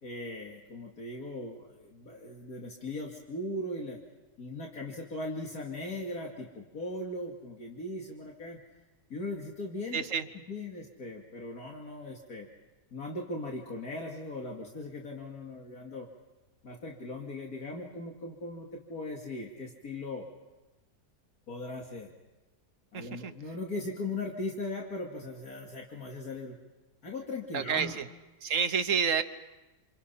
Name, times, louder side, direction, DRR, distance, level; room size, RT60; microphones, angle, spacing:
voice 1, 0.0-4.0 4.4-8.6 9.1-10.0 10.5-12.5 12.9-16.1 16.6-20.3 21.5-22.1 22.9-26.6 27.0-28.0, left 2 dB, 75° left, -1 dB, 2.8 m, -39 dB
voice 2, 9.9-10.2 22.9-23.3 27.5-28.0 28.4-29.2, right 6 dB, 60° right, 10 dB, 1.3 m, -29 dB
28.0 x 28.0 x 5.7 m, 1.1 s
omnidirectional pair, 1.6 m